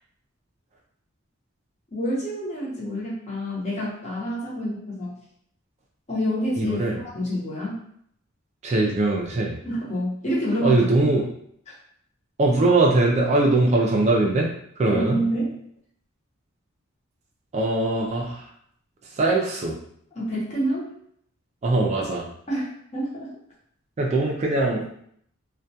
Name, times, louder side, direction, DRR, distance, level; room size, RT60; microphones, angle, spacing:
voice 1, 1.9-5.1 6.1-7.8 9.6-10.8 14.8-15.5 20.1-20.9 22.5-22.6 22.9-23.3, equal, 35° left, -5 dB, 0.8 m, -27 dB
voice 2, 6.6-7.0 8.6-9.6 10.6-11.3 12.4-15.2 17.5-18.5 19.1-19.8 21.6-22.3 24.0-24.9, right 2 dB, 35° right, -1 dB, 0.3 m, -21 dB
2.2 x 2.2 x 2.7 m, 0.67 s
head